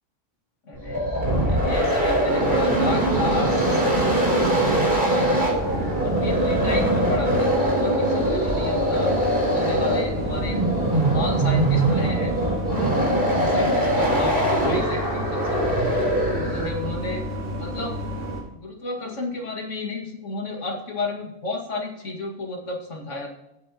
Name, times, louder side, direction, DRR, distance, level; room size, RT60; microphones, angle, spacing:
voice 1, 0.7-3.8 4.1-5.6 6.0-10.6 10.9-12.3 12.7-15.7 16.2-17.2 17.6-17.9 18.5-23.3, left 2 dB, 75° left, 0 dB, 2.4 m, -32 dB
sound 1, 0.8-16.9, right 1 dB, 45° right, 4.0 m, -22 dB
sound 2, 5.5-18.4, left 1 dB, 80° right, 4.1 m, -31 dB
17.5 x 7.8 x 2.9 m, 0.89 s
omnidirectional pair, 1.3 m